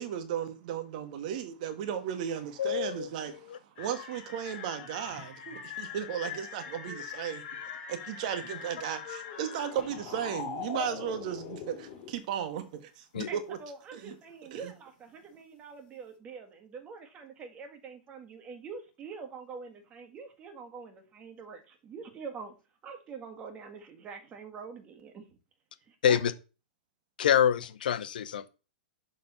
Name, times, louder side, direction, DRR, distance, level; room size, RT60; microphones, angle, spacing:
voice 1, 0.0-3.5 3.8-7.4 7.9-13.6 13.9-14.1 14.5-14.7, right 9 dB, 55° right, 1.4 m, -35 dB
voice 2, 2.6-3.6 13.1-13.3 26.0-26.3 27.2-28.5, left 9 dB, 75° left, 0.7 m, -27 dB
sound 1, 3.8-12.1, left 7 dB, 45° left, 3.1 m, -42 dB
voice 3, 13.3-22.6 22.8-25.3 25.8-26.2, right 5 dB, 25° right, 1.9 m, -45 dB
7.0 x 3.9 x 5.4 m
hypercardioid pair, 120°, 5 cm